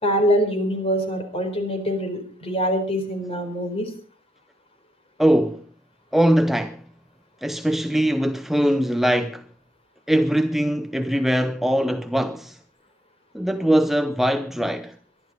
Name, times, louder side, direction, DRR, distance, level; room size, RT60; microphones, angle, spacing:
voice 1, 0.0-3.9, equal, 30° left, 4.2 m, -24 dB
voice 2, 5.2-5.7 6.1-6.8 7.4-9.5 10.1-12.6 13.3-15.0, equal, ahead, 0.6 m, -21 dB
23.0 x 12.0 x 4.2 m
head